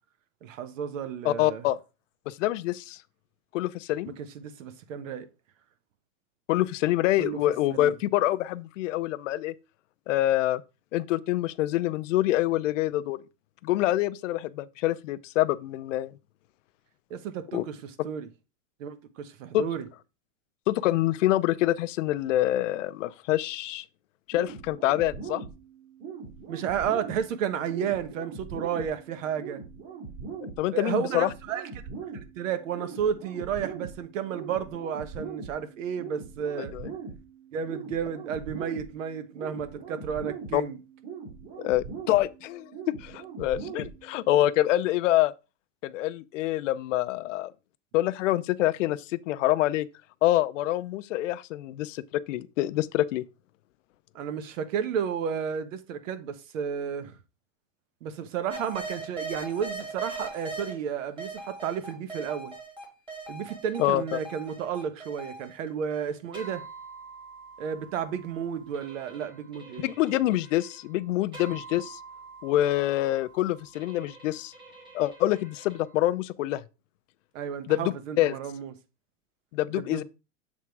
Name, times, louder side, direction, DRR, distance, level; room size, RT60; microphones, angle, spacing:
voice 1, 0.4-1.6 4.2-5.3 7.2-7.4 7.7-7.9 17.1-18.3 18.8-19.8 26.5-29.6 30.7-31.6 32.1-36.7 37.5-40.8 54.1-57.1 58.0-62.5 63.3-66.6 67.6-69.9 77.3-78.7 79.8-80.0, right 8 dB, 80° right, 1.1 m, -32 dB
voice 2, 1.2-1.8 2.3-3.0 3.5-4.2 6.5-9.5 10.1-10.6 10.9-13.2 13.6-16.1 17.5-17.6 19.5-19.6 20.7-23.8 24.3-25.4 30.4-31.3 36.7-36.9 40.5-40.6 41.6-42.7 43.0-45.3 45.8-47.5 47.9-49.9 50.2-52.0 52.3-53.2 63.8-64.0 69.8-72.0 72.4-74.5 74.9-76.6 77.7-78.3 79.5-80.0, left 15 dB, 75° left, 0.6 m, -26 dB
sound 1, 24.3-44.3, right 5 dB, 50° right, 3.2 m, -41 dB
sound 2, 58.5-60.7 61.2-76.1, right 3 dB, 15° right, 1.5 m, -42 dB
7.4 x 3.6 x 4.6 m
supercardioid pair, 170°, 38 cm